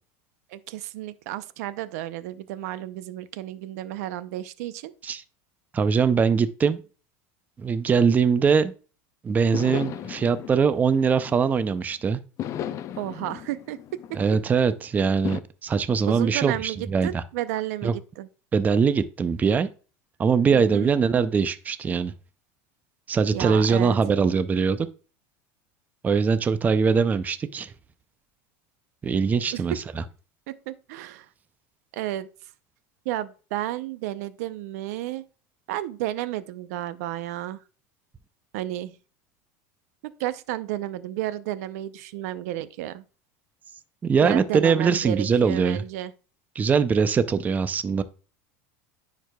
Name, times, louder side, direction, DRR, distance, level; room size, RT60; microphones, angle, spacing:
voice 1, 0.5-4.9 13.0-14.2 16.1-18.3 20.5-20.9 23.3-24.0 29.5-29.6 30.5-31.3 31.9-32.3 33.0-35.2 35.7-37.6 38.5-39.0 40.0-43.0 44.2-46.1, right 14 dB, 75° right, 0.6 m, -32 dB
voice 2, 5.7-6.8 7.6-8.7 9.2-12.2 14.1-17.2 17.8-17.9 18.5-19.7 20.2-22.1 23.1-24.9 26.0-27.7 29.0-29.7 44.0-45.8 46.6-48.0, right 6 dB, 20° right, 0.4 m, -22 dB
sound 1, 9.5-11.8 12.4-14.7 15.2-15.4, left 10 dB, 40° left, 0.4 m, -35 dB
10.0 x 4.7 x 2.3 m
supercardioid pair, 130°, 8 cm